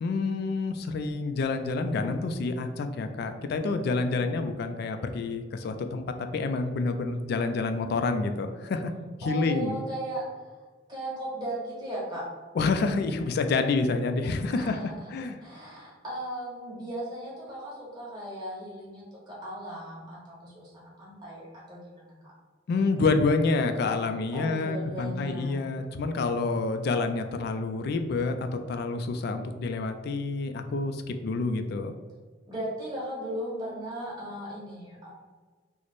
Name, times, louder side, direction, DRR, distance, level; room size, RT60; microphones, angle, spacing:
voice 1, 0.0-6.0 6.3-8.9 9.2-9.8 12.6-14.8 15.1-15.4 22.7-31.9, left 3 dB, 55° left, 7 dB, 0.3 m, -28 dB
voice 2, 9.2-10.4 10.9-12.3 14.5-22.1 24.3-25.7 32.5-35.2, right 1 dB, 20° right, -7 dB, 1.2 m, -37 dB
3.1 x 2.1 x 4.0 m, 1.4 s
head